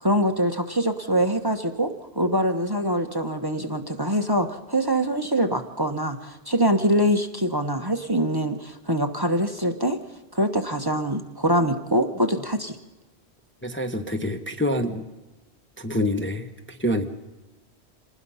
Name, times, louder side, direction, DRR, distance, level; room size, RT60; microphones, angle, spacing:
voice 1, 0.0-10.0 10.3-12.8, equal, 20° right, 6 dB, 1.0 m, -24 dB
voice 2, 13.6-15.0 15.8-17.1, left 1 dB, 10° left, 5 dB, 0.9 m, -26 dB
26.5 x 19.5 x 5.6 m, 1.1 s
omnidirectional pair, 1.1 m